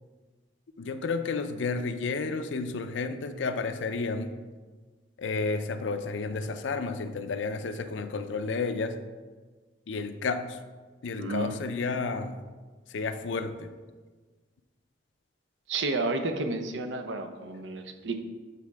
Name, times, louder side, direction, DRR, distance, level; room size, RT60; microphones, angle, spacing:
voice 1, 0.8-4.4 5.2-9.0 9.9-10.6 11.0-12.4 12.9-13.7 17.5-17.6, left 4 dB, 80° left, 9 dB, 0.5 m, -31 dB
voice 2, 11.2-11.6 15.7-18.2, right 2 dB, 80° right, 6 dB, 0.7 m, -31 dB
7.5 x 4.1 x 4.7 m, 1.4 s
head